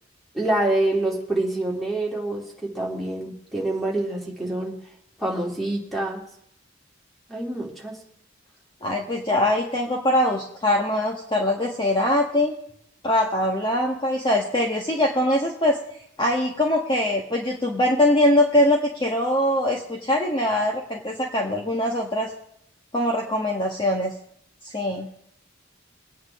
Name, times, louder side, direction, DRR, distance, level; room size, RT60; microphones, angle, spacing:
voice 1, 0.3-4.7 5.2-6.2 7.3-8.0, right 2 dB, ahead, -3 dB, 3.1 m, -26 dB
voice 2, 8.8-12.6 13.0-15.8 16.2-22.3 22.9-24.1 24.6-25.1, left 1 dB, 25° left, -1 dB, 1.5 m, -22 dB
23.0 x 9.4 x 3.7 m, 0.72 s
head